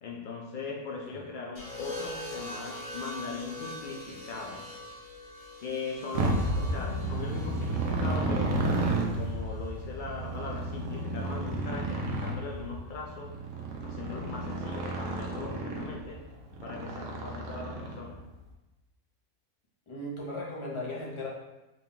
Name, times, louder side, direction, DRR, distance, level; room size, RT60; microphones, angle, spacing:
voice 1, 0.0-4.7 5.6-8.7 9.1-13.3 13.8-16.2 16.6-18.2, left 4 dB, 90° left, -2 dB, 0.4 m, -39 dB
sound 1, 1.5-9.7 10.9-11.3, left 1 dB, 65° left, 1.9 m, -43 dB
Motorcycle, 6.1-18.2, right 2 dB, 80° right, 1.1 m, -32 dB
voice 2, 6.5-7.7 19.9-21.3, left 1 dB, 30° left, -4 dB, 0.6 m, -38 dB
3.9 x 2.3 x 3.7 m, 1.0 s
omnidirectional pair, 1.4 m